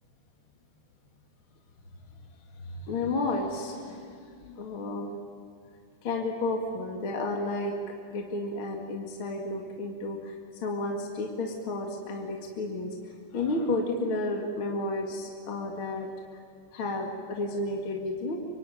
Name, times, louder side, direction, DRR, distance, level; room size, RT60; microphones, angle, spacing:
voice 1, 2.6-5.1 6.0-7.8 8.1-16.1 16.7-18.4, left 2 dB, 45° left, 2 dB, 2.8 m, -32 dB
25.0 x 24.0 x 9.4 m, 2.3 s
omnidirectional pair, 3.5 m